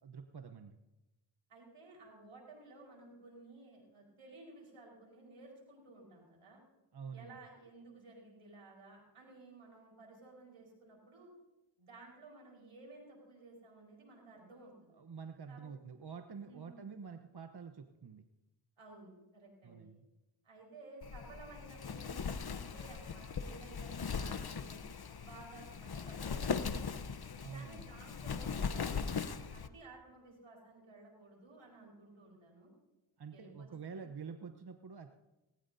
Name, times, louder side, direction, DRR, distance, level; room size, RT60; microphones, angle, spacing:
voice 1, 0.0-0.8 6.9-7.3 14.9-18.3 19.6-20.1 27.4-27.9 33.2-35.2, right 6 dB, 50° right, 7 dB, 1.0 m, -48 dB
voice 2, 1.5-6.6 7.1-11.3 11.8-15.0 15.5-15.7 16.4-16.9 18.8-19.9 20.4-24.8 25.2-27.1 27.5-29.2 29.5-32.7 33.3-34.0, right 2 dB, 80° right, -1 dB, 5.1 m, -55 dB
Wind, 21.0-29.7, left 5 dB, 50° left, 1.0 m, -39 dB
19.5 x 18.0 x 2.8 m, 1.0 s
cardioid pair, 40°, 49 cm